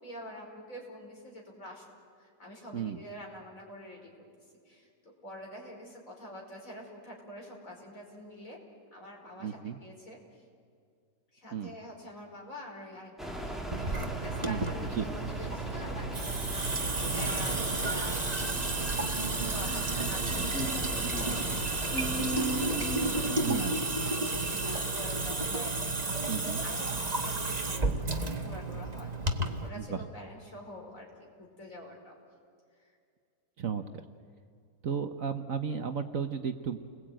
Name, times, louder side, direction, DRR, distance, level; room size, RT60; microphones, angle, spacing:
voice 1, 0.0-1.9 2.2-4.1 4.7-8.6 8.9-10.2 11.3-13.1 13.4-18.8 19.2-25.8 26.3-32.1 32.8-32.9, left 1 dB, 50° left, -1 dB, 5.6 m, -46 dB
voice 2, 9.4-9.8 11.5-11.7 14.4-14.6 15.0-15.1 23.4-23.8 26.3-26.6 29.8-30.1 33.6-33.8 34.8-36.8, right 7 dB, 55° right, 7 dB, 1.3 m, -33 dB
sound 1, 13.2-23.6, right 1 dB, ahead, 2.5 m, -37 dB
Water tap faucet / Sink (filling or washing) / Drip, 13.7-29.7, right 3 dB, 25° right, 1.4 m, -32 dB
30.0 x 21.0 x 9.0 m, 2.3 s
omnidirectional pair, 1.9 m